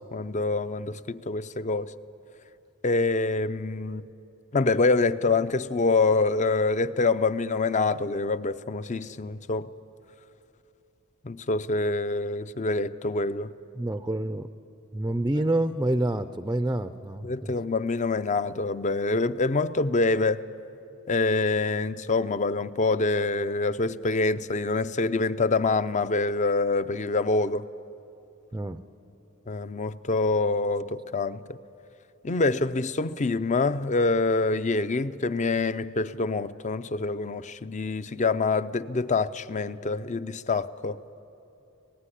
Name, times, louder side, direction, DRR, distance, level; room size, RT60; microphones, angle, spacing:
voice 1, 0.1-1.9 2.8-4.0 4.5-9.7 11.2-13.5 17.2-20.4 21.1-27.6 29.5-31.6 32.2-41.0, left 3 dB, 35° left, 0.6 m, -26 dB
voice 2, 13.8-14.5 14.9-17.5 28.5-28.8, right 1 dB, 15° right, 0.5 m, -27 dB
25.0 x 18.5 x 9.9 m
head